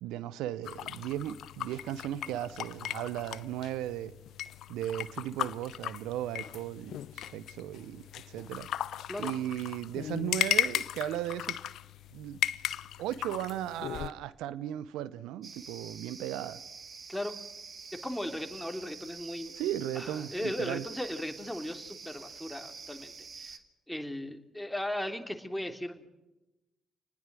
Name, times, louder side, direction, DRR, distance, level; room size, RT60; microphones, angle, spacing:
voice 1, 0.0-4.1 4.7-8.7 9.2-11.6 12.1-12.4 13.0-16.6 19.5-20.8, right 12 dB, 70° right, 0.7 m, -36 dB
sound 1, 0.6-14.1, left 11 dB, 65° left, 0.8 m, -36 dB
sound 2, 15.4-23.6, right 5 dB, 45° right, 2.0 m, -47 dB
voice 2, 17.9-19.5 19.9-23.6 23.9-26.1, left 1 dB, 5° left, 3.2 m, -37 dB
27.0 x 20.0 x 6.2 m
figure-of-eight pair, 40°, 0 cm